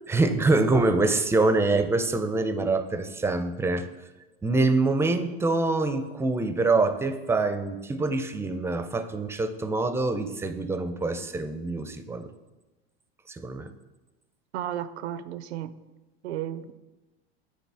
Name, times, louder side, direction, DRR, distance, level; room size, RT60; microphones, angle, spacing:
voice 1, 0.1-3.9 4.4-12.3 13.3-13.7, right 3 dB, 10° right, 0.4 m, -25 dB
voice 2, 14.5-15.7 16.2-16.7, right 11 dB, 85° right, 0.5 m, -33 dB
9.3 x 3.9 x 3.4 m
hypercardioid pair, 100°, 31 cm